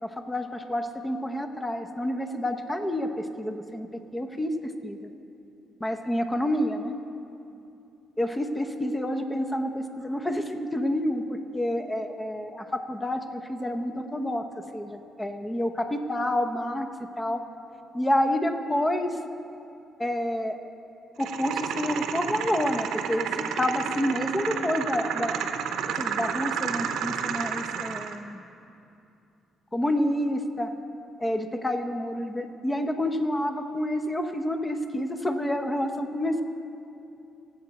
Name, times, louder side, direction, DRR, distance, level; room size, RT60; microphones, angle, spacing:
voice 1, 0.0-4.5 4.8-5.0 5.8-6.9 8.2-11.2 11.5-14.4 14.7-16.9 17.2-17.4 17.9-19.1 20.0-20.5 21.2-25.4 26.0-28.4 29.7-30.7 31.2-36.4, left 1 dB, 15° left, 6 dB, 0.8 m, -28 dB
sound 1, 21.2-28.2, right 7 dB, 80° right, 0.6 m, -31 dB
19.0 x 7.8 x 4.1 m, 2.7 s
cardioid pair, 90°, 0 cm